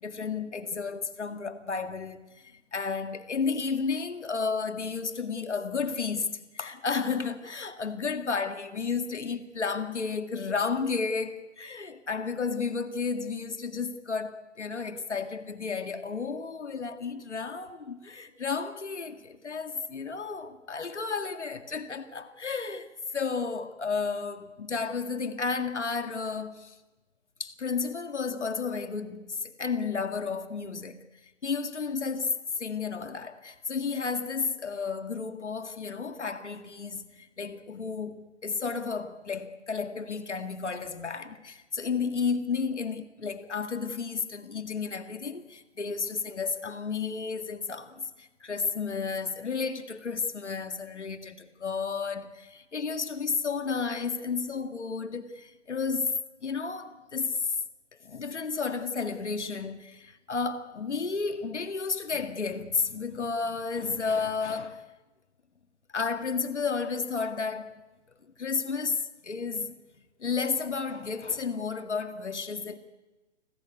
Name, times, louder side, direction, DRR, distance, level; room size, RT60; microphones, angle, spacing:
voice 1, 0.0-26.8 27.4-31.0 31.4-56.1 56.4-57.6 58.0-64.8 65.9-67.8 68.4-69.8 70.2-72.8, left 5 dB, 70° left, 2.1 m, -32 dB
29.0 x 21.0 x 9.5 m
figure-of-eight pair, 130°, 36 cm